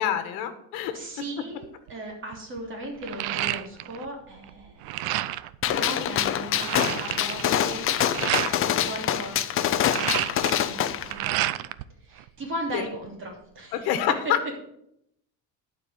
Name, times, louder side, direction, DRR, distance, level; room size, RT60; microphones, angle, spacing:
voice 1, 0.0-1.0 12.7-12.8 13.7-14.6, left 10 dB, 75° left, 9 dB, 1.4 m, -27 dB
voice 2, 0.9-5.0 5.6-7.9 8.8-9.4 10.4-10.8 11.0-11.6 12.0-13.9, right 1 dB, 35° right, 1 dB, 2.9 m, -37 dB
sound 1, 1.6-1.9 2.3-4.1 4.4-5.5 6.0-6.1 6.3-8.6 9.6-11.8 12.2-13.1, right 15 dB, 80° right, 0.6 m, -30 dB
Gunshot gunfire, 5.6-11.1, left 10 dB, 35° left, 0.6 m, -25 dB
11.5 x 4.9 x 7.9 m, 0.76 s
cardioid pair, 145°, 36 cm